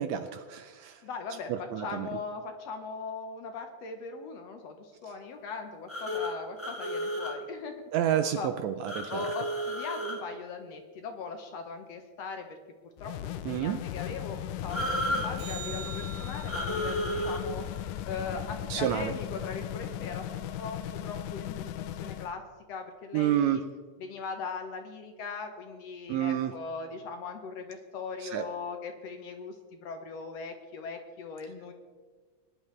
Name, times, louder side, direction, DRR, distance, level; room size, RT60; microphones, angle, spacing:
voice 1, 0.0-1.0 1.5-2.1 7.9-9.3 13.4-13.8 18.7-19.1 23.1-23.6 26.1-26.5 28.2-28.4, right 10 dB, 75° right, 9 dB, 1.7 m, -29 dB
voice 2, 1.0-8.5 9.1-12.6 13.0-17.6 18.0-22.4 22.7-23.6 24.0-31.7, left 4 dB, 65° left, 5 dB, 1.8 m, -40 dB
sound 1, 5.9-7.3 8.8-10.2 14.7-15.3 16.5-17.4, equal, 20° left, 0.3 m, -32 dB
sound 2, 13.0-22.3, left 11 dB, 85° left, 2.1 m, -37 dB
sound 3, 15.4-19.9 26.4-26.5, right 6 dB, 55° right, 2.1 m, -47 dB
20.5 x 11.0 x 3.2 m, 1.4 s
omnidirectional pair, 3.6 m